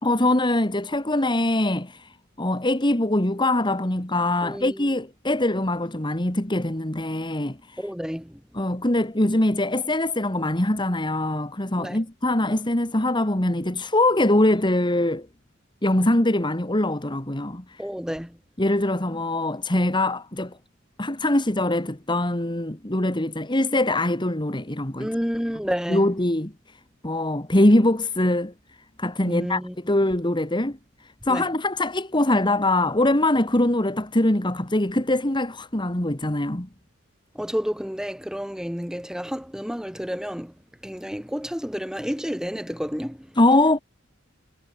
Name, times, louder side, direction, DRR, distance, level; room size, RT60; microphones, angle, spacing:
voice 1, 0.0-2.1 2.4-7.8 8.5-15.3 15.8-17.8 18.6-20.5 21.0-25.1 25.9-26.5 27.0-28.5 29.0-30.8 31.2-36.7 43.4-43.8, left 1 dB, 25° left, 2.1 m, -23 dB
voice 2, 4.4-4.9 7.8-8.4 11.8-12.0 17.8-18.4 25.0-26.1 29.2-29.8 31.3-31.5 37.3-40.5 40.8-43.3, equal, 5° right, 3.8 m, -30 dB
head